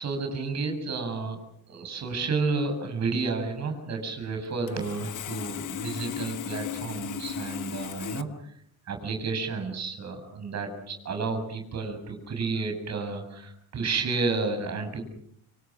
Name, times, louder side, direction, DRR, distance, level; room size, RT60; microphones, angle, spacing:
voice 1, 0.0-1.4 1.7-8.3 8.9-15.0, right 4 dB, 35° right, 5 dB, 7.5 m, -31 dB
Sawing, 4.7-8.2, left 9 dB, 40° left, 1.4 m, -36 dB
29.5 x 27.0 x 6.3 m, 0.69 s
cardioid pair, 150°, 46 cm